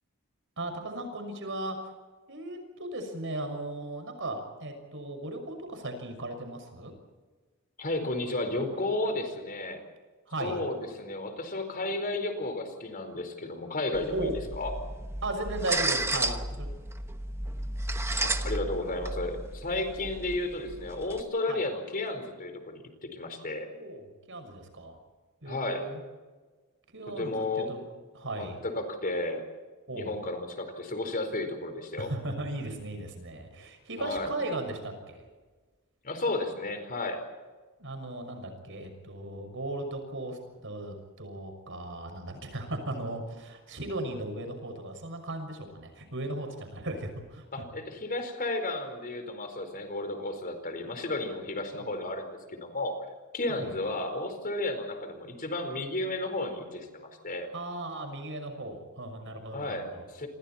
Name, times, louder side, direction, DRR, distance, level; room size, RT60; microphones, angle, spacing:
voice 1, 0.6-1.9 2.3-6.9 10.3-10.6 14.1-14.4 15.2-16.7 21.5-21.6 23.7-24.9 25.4-26.0 26.9-27.8 28.1-28.6 29.9-30.2 32.0-35.2 37.8-47.5 51.7-51.9 53.5-53.8 57.5-60.3, right 1 dB, 60° right, 6 dB, 6.2 m, -37 dB
voice 2, 7.8-9.8 10.4-14.7 18.2-23.7 25.4-25.9 27.1-27.7 28.4-29.4 29.9-32.1 34.0-34.3 36.0-37.2 47.5-52.9 53.3-56.9 57.2-57.5 59.5-60.3, left 2 dB, 40° left, 6 dB, 4.6 m, -33 dB
sound 1, 13.9-21.2, right 2 dB, 10° right, 1.1 m, -33 dB
29.0 x 26.0 x 4.4 m, 1.3 s
head